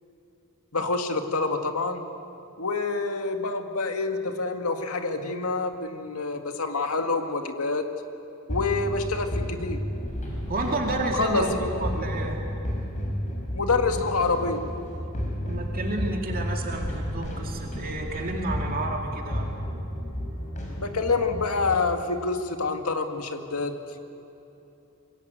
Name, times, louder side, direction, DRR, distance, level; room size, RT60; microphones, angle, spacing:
voice 1, 0.7-2.0 2.6-7.8 8.5-9.8 11.1-11.7 13.5-14.6 20.8-23.7, left 3 dB, 85° left, 5 dB, 2.0 m, -27 dB
sound 1, 8.5-21.8, equal, 35° left, 5.4 m, -32 dB
voice 2, 10.5-12.4 15.5-19.5, right 2 dB, 40° right, 1 dB, 2.5 m, -30 dB
27.0 x 22.5 x 8.1 m, 2.9 s
head